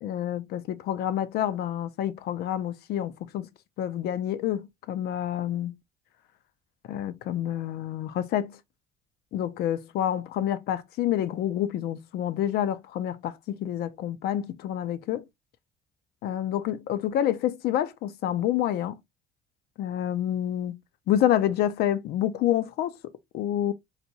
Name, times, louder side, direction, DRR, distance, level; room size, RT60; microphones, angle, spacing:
voice 1, 0.0-3.5 3.8-5.7 6.9-8.6 9.3-15.2 16.2-19.0 19.8-20.8 21.1-23.0 23.3-23.7, left 11 dB, 70° left, 0.5 m, -28 dB
4.1 x 2.2 x 2.8 m
cardioid pair, 110°, 17 cm